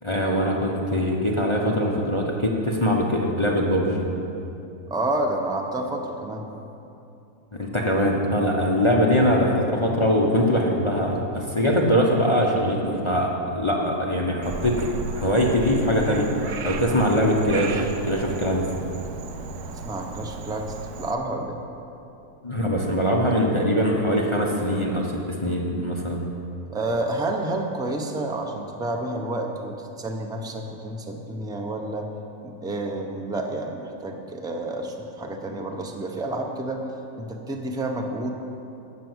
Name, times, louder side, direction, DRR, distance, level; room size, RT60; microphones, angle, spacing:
voice 1, 0.0-4.1 7.6-14.8 15.1-18.6 22.4-25.1 25.4-26.3, equal, 20° left, -2 dB, 0.9 m, -22 dB
voice 2, 4.9-6.5 19.9-21.6 26.7-32.1 32.4-36.8 37.2-38.3, right 2 dB, 5° right, 2 dB, 0.5 m, -29 dB
Frog, 14.4-21.1, right 4 dB, 80° right, 1.3 m, -35 dB
12.5 x 6.1 x 7.9 m, 2.8 s
omnidirectional pair, 1.6 m